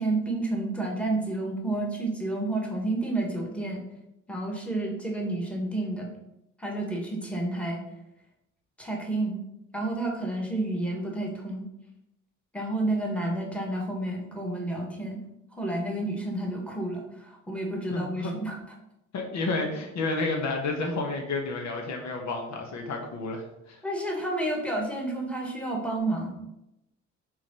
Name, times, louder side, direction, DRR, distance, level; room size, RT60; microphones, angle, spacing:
voice 1, 0.0-3.8 4.3-6.1 6.6-7.8 8.8-9.3 9.7-11.7 12.5-15.2 15.6-18.6 23.8-26.3, right 2 dB, 5° left, -1 dB, 1.7 m, -30 dB
voice 2, 17.9-18.3 19.1-23.8, left 3 dB, 65° left, 2 dB, 1.2 m, -30 dB
4.8 x 3.9 x 5.4 m, 0.87 s
cardioid pair, 90°, 30 cm